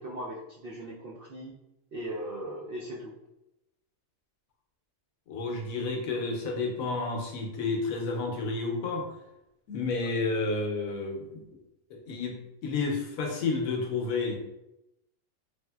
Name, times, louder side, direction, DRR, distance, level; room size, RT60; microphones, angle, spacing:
voice 1, 0.0-1.5 1.9-3.2, right 1 dB, 85° right, -4 dB, 0.5 m, -38 dB
voice 2, 5.3-9.1 9.7-11.4 11.9-14.4, left 3 dB, 75° left, 1 dB, 1.0 m, -31 dB
3.2 x 2.6 x 2.2 m, 0.91 s
omnidirectional pair, 1.5 m